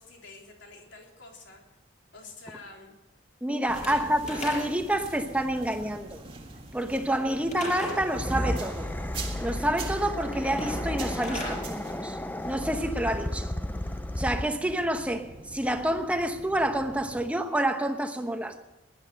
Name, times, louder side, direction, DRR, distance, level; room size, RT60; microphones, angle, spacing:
voice 1, 0.0-1.6 2.1-3.0 3.8-4.0, left 3 dB, 70° left, 3.5 m, -48 dB
voice 2, 3.4-6.2 6.7-8.9 9.4-12.2 12.4-13.5 14.2-18.6, right 1 dB, 5° right, 1.0 m, -28 dB
Slam / Wood, 3.7-5.0 7.5-8.1 10.5-11.6, left 1 dB, 35° left, 5.8 m, -36 dB
sound 1, 3.7-17.3, right 3 dB, 25° right, 1.8 m, -45 dB
sound 2, 8.0-14.7, left 1 dB, 10° left, 0.5 m, -33 dB
18.5 x 11.0 x 6.5 m
head